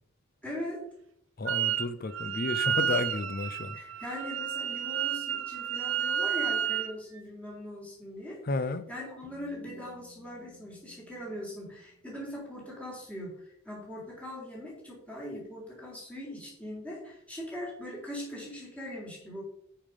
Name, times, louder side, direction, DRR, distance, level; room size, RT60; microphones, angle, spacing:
voice 1, 0.4-0.8 3.7-8.4 8.9-19.4, left 1 dB, 5° left, 3.6 m, -41 dB
voice 2, 1.4-4.0 8.4-8.9, left 3 dB, 45° left, 0.6 m, -32 dB
Wind instrument woodwind instrument, 1.5-1.9 2.1-6.9, right 8 dB, 65° right, 0.7 m, -31 dB
sound 1, 9.2-13.1, left 6 dB, 85° left, 3.8 m, -59 dB
8.7 x 5.6 x 5.1 m
head